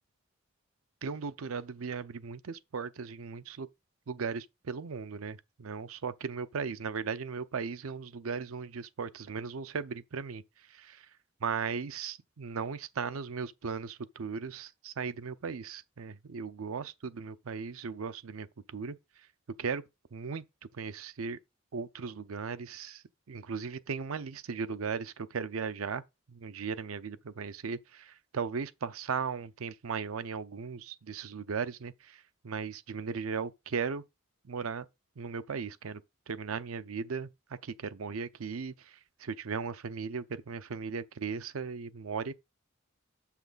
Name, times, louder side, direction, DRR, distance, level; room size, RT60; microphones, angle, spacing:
voice 1, 1.0-3.7 4.1-10.4 10.7-11.1 11.4-19.0 19.6-19.8 20.1-20.4 20.7-21.4 21.7-26.0 26.3-34.0 34.4-34.9 35.2-36.0 36.3-42.3, right 5 dB, 90° right, 0.6 m, -37 dB
7.2 x 5.8 x 3.9 m
head